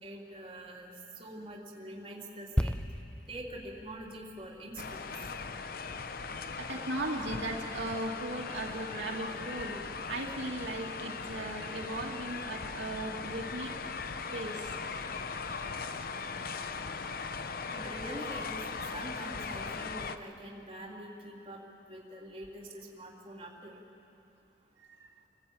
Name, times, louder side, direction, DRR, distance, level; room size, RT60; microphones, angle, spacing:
voice 1, 0.0-2.8 3.3-5.1 17.7-18.6 18.9-21.6 21.9-23.8, right 1 dB, 30° right, -3 dB, 3.1 m, -44 dB
sound 1, 2.6-6.2 6.5-6.7, equal, 5° left, 0.5 m, -36 dB
sound 2, 4.8-20.2, left 5 dB, 50° left, 0.7 m, -39 dB
voice 2, 6.6-13.8 14.3-14.7, right 2 dB, 80° right, -1 dB, 2.4 m, -37 dB
26.5 x 14.5 x 8.6 m, 2.6 s
head